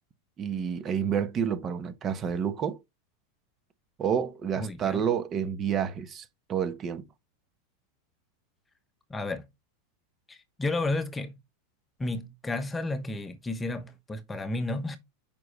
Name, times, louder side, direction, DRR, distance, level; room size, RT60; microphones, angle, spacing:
voice 1, 0.4-2.8 4.0-7.1, right 7 dB, 30° right, 1.1 m, -29 dB
voice 2, 4.6-5.0 9.1-9.5 10.3-11.4 12.0-15.0, left 2 dB, 15° left, 1.0 m, -32 dB
7.6 x 5.4 x 3.2 m
supercardioid pair, 130°, 0 cm